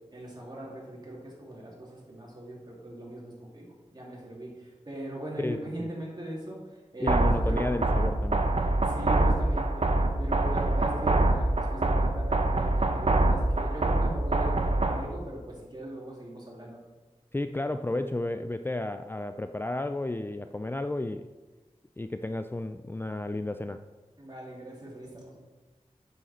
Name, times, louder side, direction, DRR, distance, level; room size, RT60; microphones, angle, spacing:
voice 1, 0.1-6.6 6.9-7.6 8.9-9.9 10.2-16.8 24.2-25.4, right 1 dB, 35° right, -4 dB, 2.9 m, -40 dB
voice 2, 5.4-5.9 7.0-8.5 17.3-21.3 22.0-23.8, left 2 dB, 20° left, 8 dB, 0.3 m, -32 dB
sound 1, 7.1-15.1, right 2 dB, 60° right, 0.8 m, -25 dB
8.9 x 6.5 x 4.3 m, 1.2 s
wide cardioid pair, 55°, 12 cm